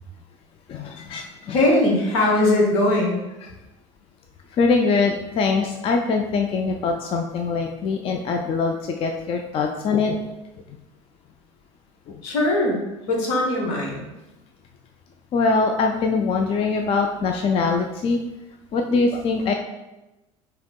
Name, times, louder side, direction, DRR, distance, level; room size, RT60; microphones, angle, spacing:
voice 1, 0.7-1.6 4.6-10.2 15.3-18.2 18.7-19.5, left 4 dB, 35° left, 3 dB, 0.4 m, -22 dB
voice 2, 1.5-3.2 12.2-12.8 13.1-14.0, left 1 dB, 65° left, 0 dB, 1.0 m, -20 dB
5.0 x 2.8 x 2.2 m, 1.0 s
hypercardioid pair, 70°, 16 cm